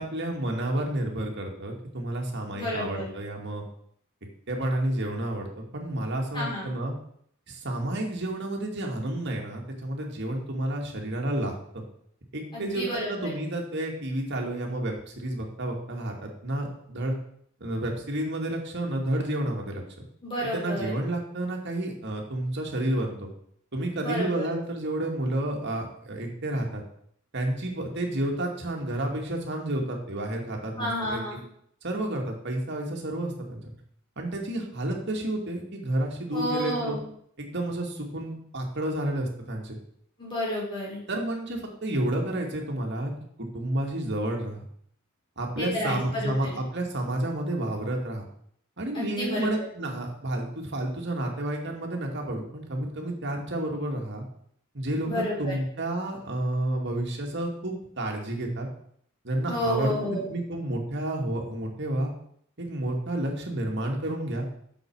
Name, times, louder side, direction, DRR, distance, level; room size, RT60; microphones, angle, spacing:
voice 1, 0.0-3.6 4.5-6.9 7.5-11.8 12.3-17.2 17.6-20.0 20.5-23.3 23.7-26.8 27.3-31.2 31.8-33.7 34.2-37.0 37.4-39.8 41.1-43.1 43.4-44.6 45.4-48.2 48.8-54.2 54.7-58.7 59.2-60.0 60.3-62.1 62.6-64.5, right 1 dB, 55° right, 1 dB, 2.4 m, -30 dB
voice 2, 2.5-3.1 6.3-6.7 12.5-13.3 20.2-20.9 24.0-24.5 30.8-31.4 36.3-37.0 40.2-41.0 45.6-46.6 48.9-49.5 55.1-55.6 59.5-60.3, equal, 25° left, -5 dB, 4.5 m, -30 dB
8.1 x 7.2 x 6.3 m, 0.66 s
head